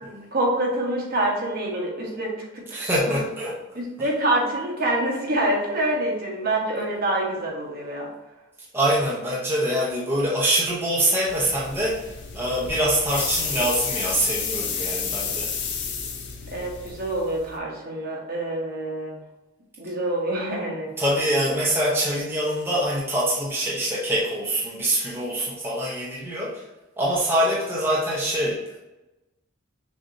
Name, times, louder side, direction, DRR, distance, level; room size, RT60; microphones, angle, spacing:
voice 1, 0.0-2.6 3.1-3.2 3.7-8.1 16.5-19.2 19.8-20.9, right 1 dB, 45° right, -2 dB, 1.3 m, -26 dB
voice 2, 2.7-4.1 8.7-15.5 21.0-26.6 27.0-28.6, right 1 dB, 10° right, -6 dB, 0.8 m, -24 dB
sound 1, 11.3-17.6, left 6 dB, 55° left, 0.7 m, -31 dB
6.3 x 2.8 x 2.7 m, 1.0 s
head